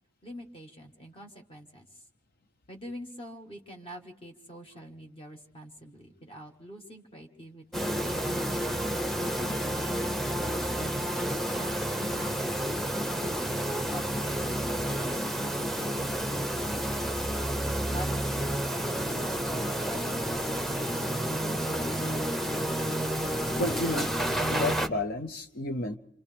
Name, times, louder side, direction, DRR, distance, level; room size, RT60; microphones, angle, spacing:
voice 1, 0.2-2.0 2.7-8.3 9.2-12.7 13.1-16.9 17.9-21.1, equal, 30° left, 3 dB, 1.8 m, -46 dB
sound 1, 7.7-24.9, right 1 dB, ahead, 0.9 m, -30 dB
Wind instrument woodwind instrument, 17.5-23.0, right 3 dB, 85° left, 3.5 m, -51 dB
voice 2, 23.6-24.1 24.5-26.0, left 1 dB, 55° left, 7 dB, 0.8 m, -31 dB
27.5 x 27.5 x 3.5 m, 0.85 s
head